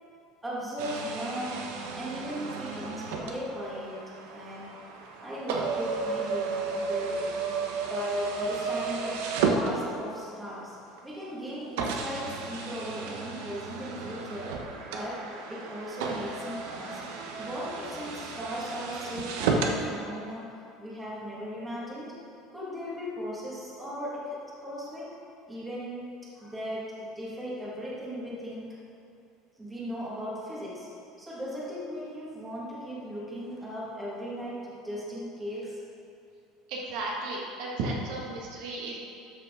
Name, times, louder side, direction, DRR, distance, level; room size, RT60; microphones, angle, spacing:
voice 1, 0.4-4.8 5.2-7.3 7.8-9.2 9.5-10.8 11.0-14.7 14.9-17.0 17.4-22.2 22.5-25.2 25.5-26.1 26.4-28.8 29.6-30.9 31.2-35.8, equal, 10° right, -7 dB, 1.6 m, -37 dB
sound 1, 0.8-10.3 11.0-11.1 11.8-19.8, right 4 dB, 85° right, 1.0 m, -33 dB
voice 2, 36.7-39.0, right 2 dB, 60° right, -3 dB, 1.6 m, -34 dB
12.5 x 6.0 x 3.7 m, 2.6 s
cardioid pair, 165°, 0 cm